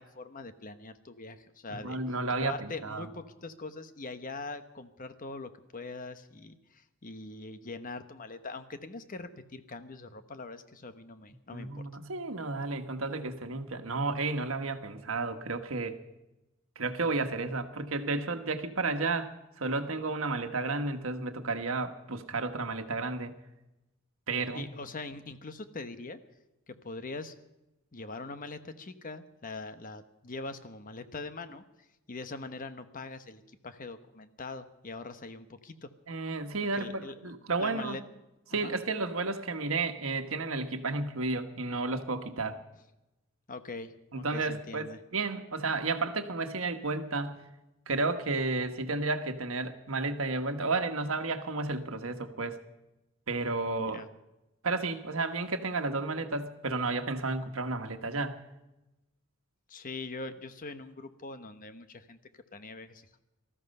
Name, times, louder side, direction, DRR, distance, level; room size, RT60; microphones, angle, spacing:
voice 1, 0.0-2.0 2.4-11.9 24.5-26.2 26.7-27.3 27.9-31.6 32.1-35.9 36.8-37.3 37.6-38.0 38.5-38.7 43.5-45.0 53.9-54.1 59.7-62.2 62.5-63.1, left 3 dB, 40° left, 10 dB, 1.0 m, -42 dB
voice 2, 1.7-3.0 11.5-16.0 16.8-23.3 24.3-24.7 36.1-38.0 38.5-42.6 44.1-47.4 47.9-52.6 53.3-54.0 54.6-58.4, right 3 dB, 85° right, 7 dB, 1.3 m, -32 dB
19.0 x 14.0 x 5.4 m, 0.96 s
head